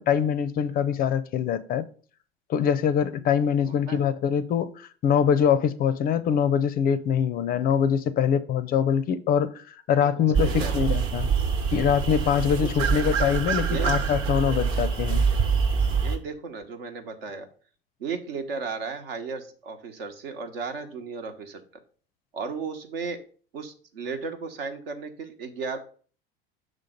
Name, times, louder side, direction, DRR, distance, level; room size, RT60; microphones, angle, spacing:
voice 1, 0.0-1.8 2.5-11.3 11.7-15.3, left 8 dB, 30° left, 0.4 m, -24 dB
voice 2, 3.7-4.0 10.0-10.8 12.5-13.1 13.7-14.0 16.0-17.5 18.0-21.6 22.3-23.2 23.5-25.8, right 5 dB, 70° right, 1.1 m, -35 dB
sound 1, 10.3-16.2, right 6 dB, 45° right, 1.1 m, -25 dB
6.3 x 3.8 x 5.1 m
figure-of-eight pair, 80°, 30 cm